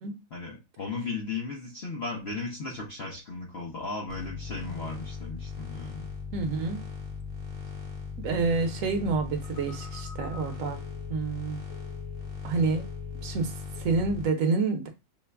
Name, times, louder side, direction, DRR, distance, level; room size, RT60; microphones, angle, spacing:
voice 1, 0.3-6.1, left 3 dB, 65° left, 0.6 m, -36 dB
sound 1, 4.1-14.2, left 5 dB, 35° right, 0.7 m, -38 dB
voice 2, 6.3-6.8 8.2-10.8 11.1-11.6 12.4-12.8 13.2-13.5 13.8-14.9, right 4 dB, 55° right, 1.0 m, -28 dB
Telephone, 9.4-12.5 12.7-13.4 13.7-14.0, left 5 dB, 80° left, 2.9 m, -49 dB
5.2 x 2.2 x 3.3 m
omnidirectional pair, 2.0 m